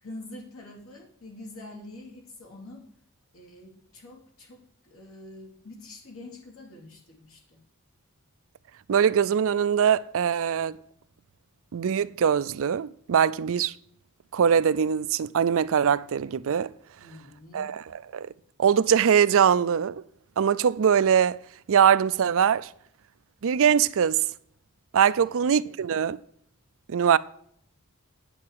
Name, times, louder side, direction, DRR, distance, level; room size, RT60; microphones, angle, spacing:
voice 1, 0.0-2.9 3.3-7.7 17.0-17.8 25.2-25.3 25.6-25.8, left 2 dB, 70° left, 2.7 m, -45 dB
voice 2, 8.9-10.8 11.7-13.7 14.3-16.7 17.5-18.3 18.6-20.0 20.4-21.4 21.7-22.7 23.4-24.3 24.9-26.2 26.9-27.2, right 8 dB, 65° right, 0.4 m, -22 dB
8.8 x 8.6 x 4.7 m
head